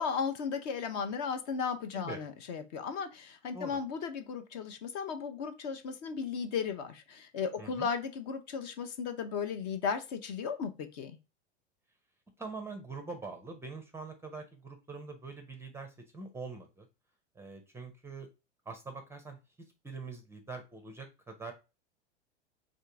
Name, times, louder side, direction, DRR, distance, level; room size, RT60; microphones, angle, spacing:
voice 1, 0.0-11.2, left 6 dB, 40° left, 8 dB, 0.6 m, -35 dB
voice 2, 7.6-7.9 12.4-16.9 17.4-18.3 18.7-19.4 19.8-21.5, right 4 dB, 5° right, 5 dB, 0.5 m, -44 dB
3.7 x 2.5 x 4.6 m, 0.28 s
figure-of-eight pair, 90°, 34 cm